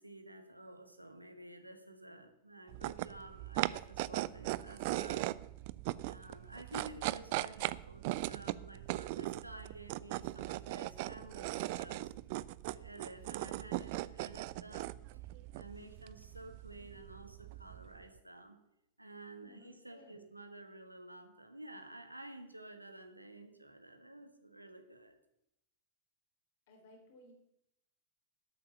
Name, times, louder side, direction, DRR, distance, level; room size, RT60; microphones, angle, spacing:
voice 1, 0.0-5.3 6.0-12.1 12.7-14.9 15.5-18.6 19.0-25.2, right 2 dB, 85° right, 7 dB, 1.5 m, -51 dB
sound 1, 2.7-18.0, right 18 dB, 50° right, 0.4 m, -39 dB
voice 2, 19.4-20.4 26.7-27.3, left 2 dB, 55° left, 2 dB, 3.7 m, -60 dB
12.0 x 8.4 x 6.8 m, 0.82 s
figure-of-eight pair, 90°, 0 cm